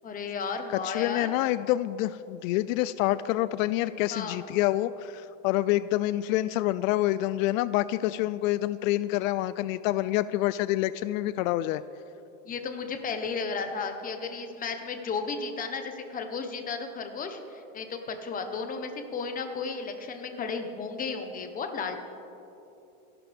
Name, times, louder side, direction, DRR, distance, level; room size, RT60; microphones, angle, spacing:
voice 1, 0.0-1.3 4.1-4.4 12.4-22.0, left 5 dB, 20° left, 6 dB, 1.1 m, -34 dB
voice 2, 0.7-11.8, left 15 dB, 75° left, 16 dB, 0.5 m, -27 dB
26.0 x 12.0 x 3.6 m, 2.9 s
supercardioid pair, 160°, 40 cm